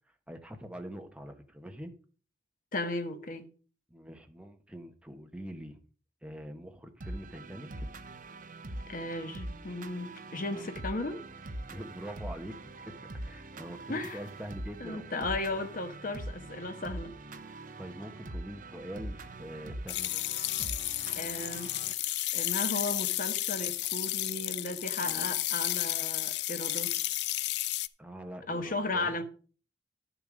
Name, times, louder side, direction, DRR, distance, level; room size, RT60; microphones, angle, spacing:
voice 1, 0.3-1.9 3.9-5.8 6.2-7.9 10.4-10.7 11.7-12.9 13.2-15.1 17.5-20.2 25.0-25.3 28.0-29.1, equal, 5° right, 1.1 m, -44 dB
voice 2, 2.7-3.5 8.9-11.2 13.9-14.2 14.8-17.1 20.6-20.7 21.1-21.8 22.3-26.9 28.5-29.2, left 2 dB, 50° left, 1.2 m, -35 dB
sound 1, 7.0-21.9, right 1 dB, 50° right, 0.8 m, -43 dB
sound 2, 19.9-27.9, left 15 dB, 65° left, 0.4 m, -32 dB
11.0 x 7.1 x 5.0 m
head